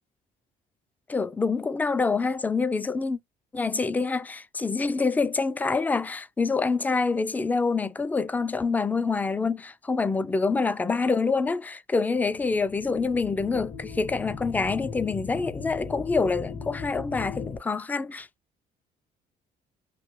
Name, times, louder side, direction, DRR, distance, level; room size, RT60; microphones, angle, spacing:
voice 1, 1.1-3.2 3.5-18.3, left 4 dB, 10° left, 0.3 m, -26 dB
sound 1, 12.2-17.6, left 5 dB, 35° left, 0.6 m, -38 dB
3.1 x 2.8 x 3.0 m
cardioid pair, 110°, 17 cm